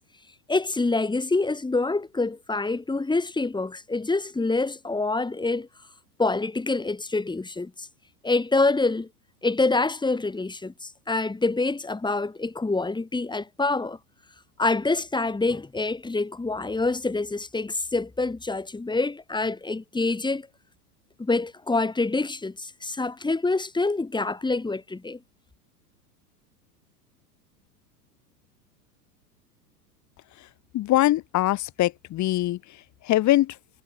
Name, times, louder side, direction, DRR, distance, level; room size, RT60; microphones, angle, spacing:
voice 1, 0.5-5.7 6.2-7.9 8.2-9.1 9.4-14.0 14.6-20.5 21.2-25.2, left 3 dB, 10° left, 6.1 m, -26 dB
voice 2, 30.7-32.6 33.0-33.6, left 15 dB, 35° left, 3.2 m, -22 dB
hypercardioid pair, 95°, 48 cm